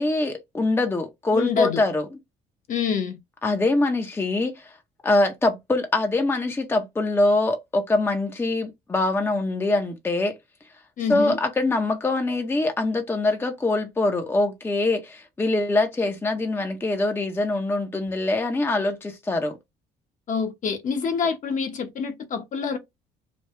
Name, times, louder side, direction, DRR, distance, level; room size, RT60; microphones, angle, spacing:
voice 1, 0.0-2.0 3.4-4.8 5.0-10.4 11.1-19.6, left 2 dB, 15° left, 0.6 m, -24 dB
voice 2, 1.3-1.8 2.7-3.2 11.0-11.4 20.3-22.8, left 6 dB, 50° left, 1.0 m, -26 dB
3.2 x 2.3 x 4.2 m
cardioid pair, 110°, 17 cm